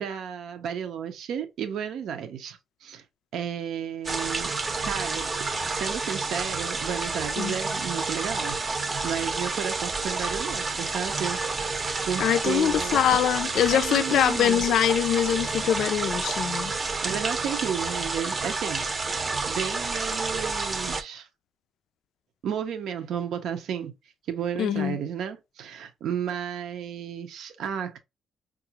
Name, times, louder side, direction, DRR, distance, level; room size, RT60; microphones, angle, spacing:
voice 1, 0.0-3.0 3.3-4.5 4.8-5.4 5.7-11.8 12.1-13.0 13.7-14.6 16.6-21.3 22.4-23.9 24.3-28.0, right 8 dB, 75° right, 0.7 m, -33 dB
sound 1, 4.1-21.0, right 3 dB, 35° right, 0.7 m, -29 dB
voice 2, 12.2-16.7 24.6-25.0, left 10 dB, 75° left, 0.3 m, -23 dB
4.7 x 2.4 x 2.8 m
cardioid pair, 90°, 0 cm